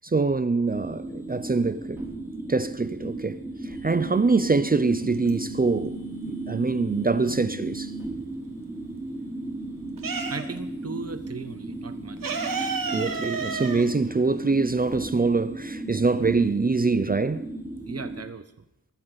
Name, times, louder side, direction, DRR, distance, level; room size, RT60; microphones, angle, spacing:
voice 1, 0.0-2.0 2.5-3.4 3.7-6.0 6.3-7.9 12.9-17.4, right 3 dB, 25° right, 0.5 m, -24 dB
sound 1, 0.7-18.2, right 2 dB, 10° right, 3.3 m, -35 dB
sound 2, 4.8-5.7 6.1-8.0 8.4-10.8 11.0-11.2 11.4-15.0, right 4 dB, 60° right, 1.7 m, -32 dB
voice 2, 10.2-12.3 17.9-18.4, right 4 dB, 40° right, 1.2 m, -37 dB
22.5 x 13.0 x 4.0 m
wide cardioid pair, 155°, 37 cm